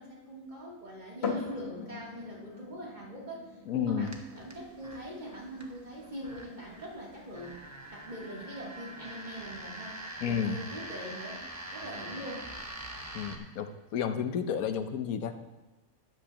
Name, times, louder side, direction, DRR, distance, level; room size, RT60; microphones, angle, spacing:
voice 1, 0.0-3.4 3.7-7.6 7.9-10.0 10.2-12.5, right 1 dB, 30° right, -5 dB, 3.0 m, -42 dB
sound 1, 1.2-14.7, left 4 dB, 50° left, 1.3 m, -45 dB
voice 2, 3.7-4.1 10.2-10.6 13.1-15.3, left 8 dB, 90° left, 8 dB, 1.2 m, -31 dB
sound 2, 4.0-13.4, right 1 dB, 15° right, 0.9 m, -44 dB
13.0 x 11.0 x 2.9 m, 1.1 s
omnidirectional pair, 1.5 m